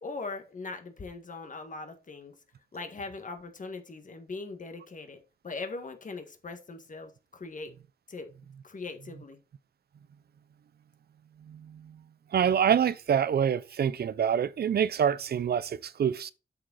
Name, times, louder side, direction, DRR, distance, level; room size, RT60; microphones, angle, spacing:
voice 1, 0.0-2.3 2.7-5.2 5.4-7.7 8.1-8.3 8.6-9.4, left 3 dB, 55° left, 1.7 m, -40 dB
voice 2, 11.5-12.0 12.3-16.3, right 8 dB, 80° right, 0.5 m, -26 dB
7.7 x 6.4 x 4.0 m
wide cardioid pair, 115°, 16 cm